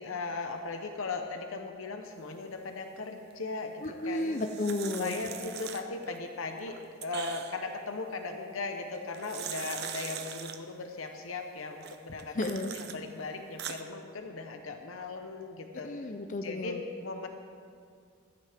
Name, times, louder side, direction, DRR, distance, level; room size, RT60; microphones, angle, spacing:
voice 1, 0.0-4.4 4.9-12.4 12.7-15.9 16.4-17.3, left 3 dB, 75° left, 5 dB, 0.8 m, -38 dB
voice 2, 3.8-5.1 12.1-12.7 15.8-16.8, left 2 dB, 35° left, 5 dB, 0.6 m, -33 dB
sound 1, 4.0-6.2 6.6-7.7 8.9-10.6 11.8-13.0 13.4-13.8, right 8 dB, 50° right, 0.6 m, -41 dB
15.0 x 12.5 x 3.5 m, 2.2 s
head